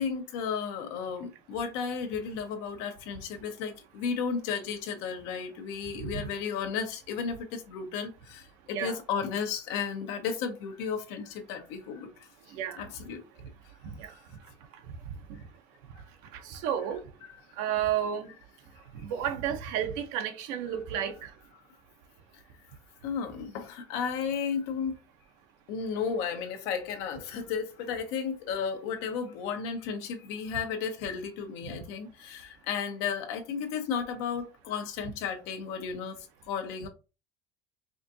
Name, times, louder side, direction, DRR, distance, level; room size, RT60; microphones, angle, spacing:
voice 1, 0.0-12.3 12.8-13.2 23.0-24.9 25.7-36.9, left 6 dB, 80° left, 1.0 m, -34 dB
voice 2, 12.5-12.9 13.8-14.1 16.3-17.0 17.6-18.3 19.0-21.3 31.7-31.8, right 9 dB, 70° right, 0.9 m, -32 dB
4.9 x 2.6 x 2.7 m
cardioid pair, 135°, 13 cm